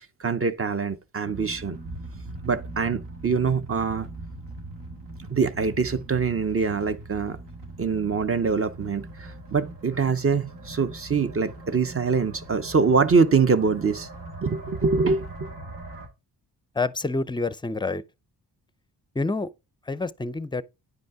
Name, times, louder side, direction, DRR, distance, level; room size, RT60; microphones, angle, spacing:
voice 1, 0.0-1.8 2.4-4.1 5.3-7.4 7.8-14.1 14.4-15.5, right 5 dB, 35° right, 0.7 m, -24 dB
sound 1, 1.2-16.1, right 2 dB, 80° right, 2.1 m, -41 dB
voice 2, 16.7-18.0 19.1-19.5 19.9-20.6, left 3 dB, 10° left, 0.5 m, -27 dB
9.5 x 5.3 x 3.5 m
cardioid pair, 65°, 41 cm